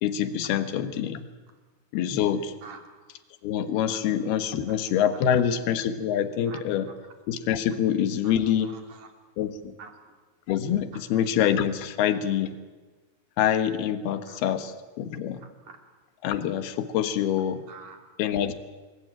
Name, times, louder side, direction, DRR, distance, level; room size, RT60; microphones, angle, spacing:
voice 1, 0.0-1.3 1.9-2.5 3.4-6.9 7.3-8.7 9.4-9.7 10.5-12.5 13.4-15.5 16.2-17.6 18.2-18.5, left 9 dB, 75° left, 11 dB, 3.4 m, -26 dB
voice 2, 8.6-9.1 9.8-10.2 14.3-14.4 15.4-15.8 17.7-18.0, right 5 dB, 50° right, 4 dB, 4.2 m, -46 dB
28.0 x 21.5 x 9.0 m, 1.3 s
omnidirectional pair, 4.7 m